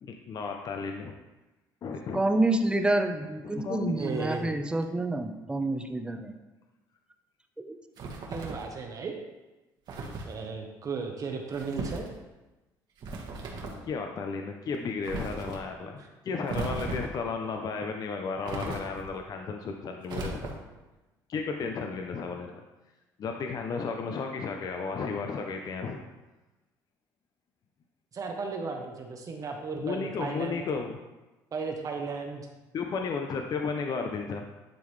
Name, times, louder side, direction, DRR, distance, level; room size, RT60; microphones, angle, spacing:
voice 1, 0.0-1.1 1.8-2.2 3.6-4.0 13.9-20.6 21.3-22.6 23.2-26.0 29.7-31.0 32.7-34.4, left 5 dB, 50° left, 3 dB, 0.6 m, -33 dB
voice 2, 2.1-6.3 7.6-7.8, right 2 dB, 10° right, 6 dB, 0.7 m, -28 dB
voice 3, 4.0-4.5 8.3-9.1 10.3-12.0 28.1-30.6 31.5-32.5, right 4 dB, 45° right, 2 dB, 0.9 m, -35 dB
sound 1, 8.0-8.7 9.9-10.3 11.5-12.1 13.0-13.8 15.0-15.6 16.5-17.2 18.4-19.2 20.1-20.8, right 3 dB, 60° right, 1.3 m, -36 dB
10.5 x 3.8 x 3.2 m, 1.1 s
supercardioid pair, 85°, 8 cm